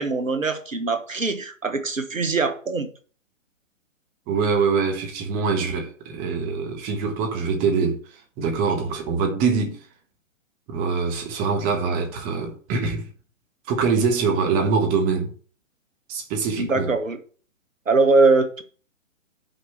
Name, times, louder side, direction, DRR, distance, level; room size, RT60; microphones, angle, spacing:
voice 1, 0.0-2.9 16.6-17.2 17.9-18.6, right 3 dB, 80° right, 1.4 m, -21 dB
voice 2, 4.3-8.0 8.4-9.8 10.7-13.1 13.7-15.3 16.1-16.9, right 5 dB, 20° right, 1.5 m, -24 dB
5.8 x 5.5 x 6.9 m
figure-of-eight pair, 130°, 39 cm